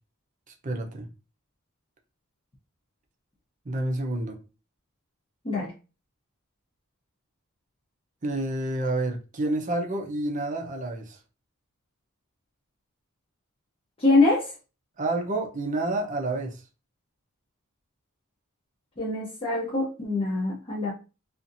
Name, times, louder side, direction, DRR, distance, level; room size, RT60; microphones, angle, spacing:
voice 1, 0.5-1.1 3.6-4.4 8.2-11.2 15.0-16.6, right 2 dB, 35° right, 0.6 m, -29 dB
voice 2, 14.0-14.5 19.0-20.9, left 2 dB, 25° left, 0.7 m, -24 dB
2.7 x 2.5 x 2.5 m
head